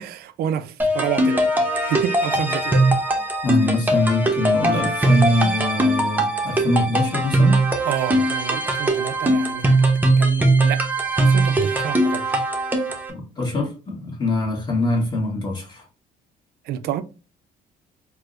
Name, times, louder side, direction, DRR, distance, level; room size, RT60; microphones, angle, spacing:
voice 1, 0.0-1.4 1.7-2.8 7.9-9.7 10.2-10.8 11.2-12.4 16.7-17.0, right 10 dB, 70° right, 0.4 m, -29 dB
sound 1, 0.8-13.1, right 2 dB, 10° right, 0.7 m, -20 dB
voice 2, 3.4-7.6 13.1-15.8, left 1 dB, 25° left, 1.3 m, -23 dB
4.6 x 2.0 x 2.5 m
cardioid pair, 110°, 17 cm